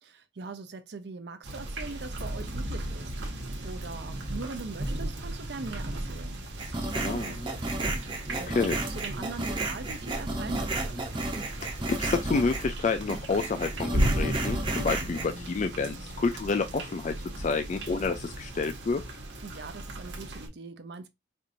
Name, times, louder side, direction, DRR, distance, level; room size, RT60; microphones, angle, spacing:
voice 1, 0.0-3.1 3.6-11.0 19.4-21.1, right 3 dB, 65° right, 0.6 m, -42 dB
sound 1, 1.4-20.5, right 1 dB, 80° right, 1.1 m, -35 dB
sound 2, 6.6-12.8 13.1-15.3, right 2 dB, 25° right, 0.8 m, -33 dB
voice 2, 7.0-7.3 8.5-8.8 11.6-19.0, left 4 dB, 40° left, 0.4 m, -29 dB
4.4 x 2.5 x 2.5 m
head